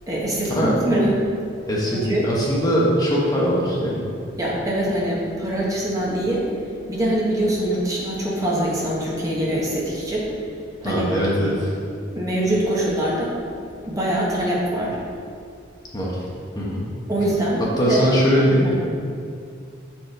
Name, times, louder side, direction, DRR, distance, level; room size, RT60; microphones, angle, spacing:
voice 1, 0.1-1.1 1.9-2.3 4.4-6.4 6.9-10.3 10.8-11.1 11.4-11.5 12.1-13.3 13.8-15.0 17.1-18.0 18.5-18.7, right 1 dB, 20° right, -5 dB, 1.1 m, -23 dB
voice 2, 1.7-4.1 10.8-11.7 15.9-16.2 16.5-16.8 17.6-18.7, equal, 20° left, -5 dB, 1.0 m, -21 dB
7.0 x 4.5 x 4.5 m, 2.3 s
head